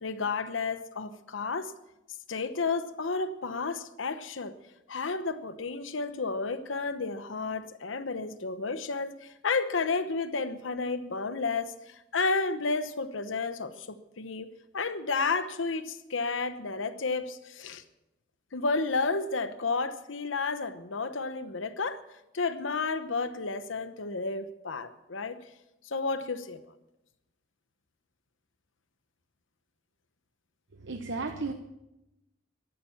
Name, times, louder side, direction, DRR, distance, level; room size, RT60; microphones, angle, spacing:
voice 1, 0.0-1.7 2.3-4.5 4.9-14.5 14.7-17.8 18.5-22.0 22.3-25.4 25.8-26.6, left 4 dB, 85° left, 11 dB, 1.0 m, -31 dB
voice 2, 30.8-31.5, right 3 dB, 65° right, 5 dB, 1.0 m, -33 dB
13.5 x 12.0 x 7.1 m, 0.91 s
head